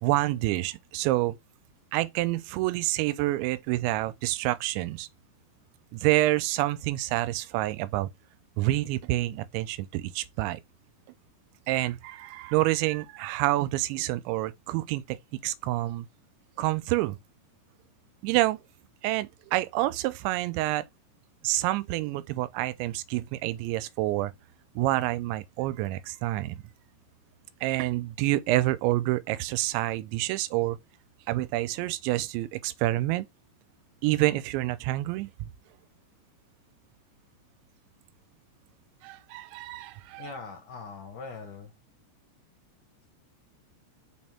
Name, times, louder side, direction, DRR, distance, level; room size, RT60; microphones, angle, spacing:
voice 1, 0.0-1.4 1.9-5.1 5.9-8.1 8.6-10.6 11.7-15.2 15.4-16.1 16.6-17.2 18.2-18.6 19.0-20.8 21.4-24.3 24.8-26.6 27.6-30.8 31.3-33.3 34.0-35.3 39.0-40.3, right 17 dB, 90° right, 2.9 m, -28 dB
voice 2, 40.2-41.7, left 4 dB, 60° left, 2.7 m, -41 dB
6.4 x 4.3 x 3.5 m
omnidirectional pair, 5.1 m